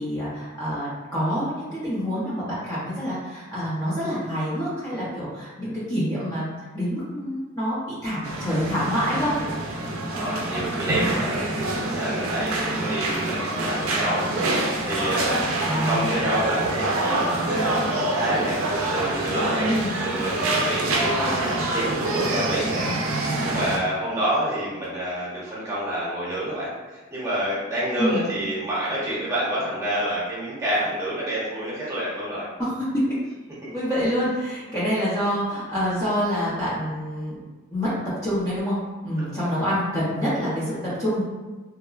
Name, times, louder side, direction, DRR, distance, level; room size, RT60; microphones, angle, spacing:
voice 1, 0.0-6.5 6.7-9.3 15.6-16.1 19.7-20.0 28.0-28.3 32.6-33.0 33.7-37.4 37.7-37.9 38.2-38.8 39.0-41.2, equal, 15° left, -10 dB, 0.6 m, -26 dB
sound 1, 8.2-23.8, right 2 dB, 80° right, 0.4 m, -26 dB
voice 2, 10.1-11.5 11.8-14.3 14.8-18.6 18.9-19.7 20.0-22.9 23.4-32.5 33.6-33.7 39.3-39.5, right 1 dB, 15° right, -8 dB, 0.9 m, -28 dB
2.9 x 2.1 x 2.4 m, 1.3 s
head